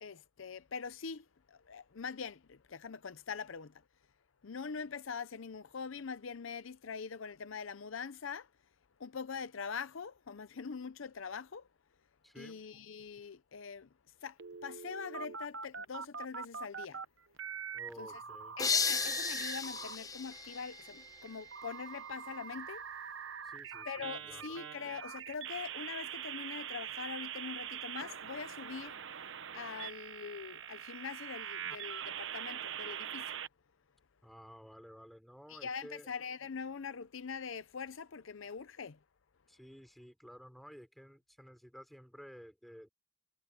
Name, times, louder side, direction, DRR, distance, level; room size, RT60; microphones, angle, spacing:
voice 1, 0.0-3.8 4.4-8.5 9.0-11.7 12.4-13.9 14.2-17.0 18.0-18.1 18.6-22.8 23.9-29.0 29.5-33.3 35.5-39.0, left 6 dB, 70° left, 0.6 m, -43 dB
voice 2, 12.2-12.6 17.7-18.6 23.4-24.5 34.2-36.1 39.5-42.9, equal, ahead, 5.8 m, -53 dB
sound 1, 14.4-17.0 17.4-19.9 20.3-33.5, right 8 dB, 65° right, 1.0 m, -43 dB
sound 2, 18.6-21.4, left 5 dB, 20° left, 0.8 m, -35 dB
head